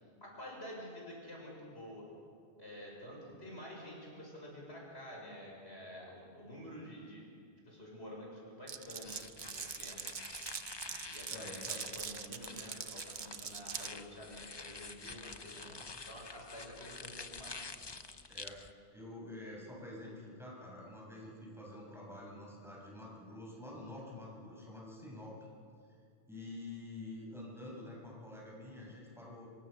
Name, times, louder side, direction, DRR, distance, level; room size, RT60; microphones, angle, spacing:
voice 1, 0.2-2.1 2.6-7.3 7.6-10.0 11.0-17.6, equal, 80° left, -2 dB, 6.6 m, -49 dB
Glass, 8.7-13.9, right 7 dB, 50° right, 0.8 m, -43 dB
sound 1, 9.0-18.7, left 3 dB, 25° left, 0.7 m, -48 dB
voice 2, 11.3-11.8 18.3-18.6 18.9-25.3 26.3-29.5, left 1 dB, ahead, -4 dB, 6.8 m, -48 dB
25.5 x 24.0 x 6.6 m, 2.3 s
omnidirectional pair, 1.1 m